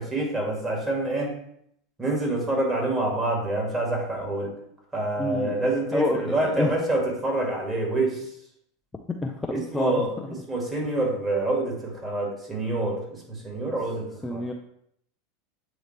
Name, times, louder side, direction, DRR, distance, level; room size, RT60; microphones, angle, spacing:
voice 1, 0.0-1.3 2.0-4.5 4.9-8.2 9.5-10.1 10.5-14.4, right 2 dB, 15° right, -2 dB, 2.2 m, -26 dB
voice 2, 5.2-5.6 5.9-6.7 9.1-10.1 14.2-14.5, left 2 dB, 10° left, 3 dB, 0.5 m, -28 dB
7.9 x 3.8 x 3.3 m, 0.71 s
figure-of-eight pair, 80°, 0 cm